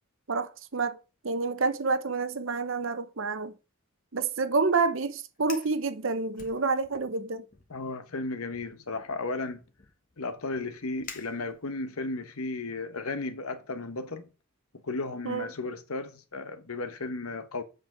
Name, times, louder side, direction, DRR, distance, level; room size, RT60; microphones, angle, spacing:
voice 1, 0.3-3.5 4.1-7.5 15.2-15.5, right 4 dB, 60° right, 0.8 m, -28 dB
Fire, 5.3-5.8 6.3-7.1 7.5-7.8 8.5-11.9, left 6 dB, 40° left, 1.2 m, -48 dB
voice 2, 7.7-9.6 10.2-14.3 14.8-17.6, left 3 dB, 80° left, 1.1 m, -34 dB
8.4 x 5.2 x 4.6 m
head